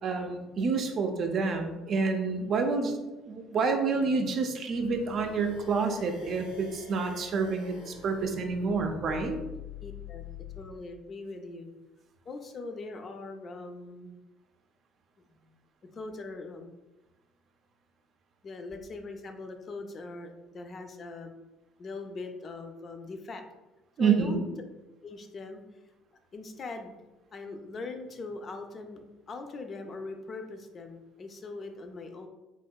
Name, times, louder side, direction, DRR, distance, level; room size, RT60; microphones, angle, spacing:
voice 1, 0.0-3.0 3.3-9.4 24.0-24.4, right 4 dB, 55° right, 5 dB, 0.4 m, -28 dB
sound 1, 4.7-10.6, left 6 dB, 85° left, 0.7 m, -46 dB
voice 2, 9.8-10.2 10.6-11.7 12.3-14.1 15.3-15.5 15.8-16.8 18.4-21.4 21.8-23.4 24.0-24.4 25.0-25.6 26.3-26.9 27.3-32.3, left 3 dB, 45° left, 6 dB, 0.4 m, -41 dB
3.1 x 2.7 x 2.2 m, 1.1 s
hypercardioid pair, 65°, 0 cm